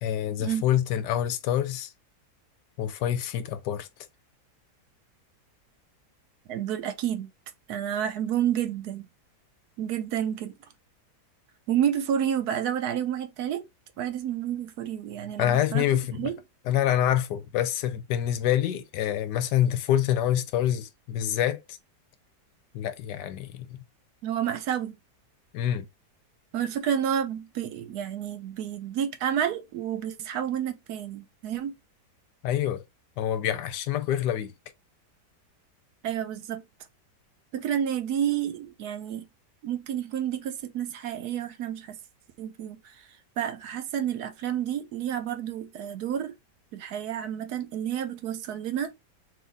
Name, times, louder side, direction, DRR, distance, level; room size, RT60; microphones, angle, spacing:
voice 1, 0.0-1.9 2.8-3.9 15.4-16.3 16.7-21.8 22.7-23.7 25.5-25.9 32.4-32.8 33.2-34.5, left 11 dB, 80° left, 1.2 m, -26 dB
voice 2, 6.5-7.3 7.7-9.1 9.8-10.6 11.7-13.6 14.0-15.9 16.2-16.4 24.2-25.0 26.5-31.8 36.0-36.6 37.5-39.3 39.6-42.0 42.4-42.9 43.4-46.3 46.7-48.9, right 9 dB, 70° right, 1.1 m, -30 dB
3.9 x 2.9 x 3.4 m
omnidirectional pair, 1.8 m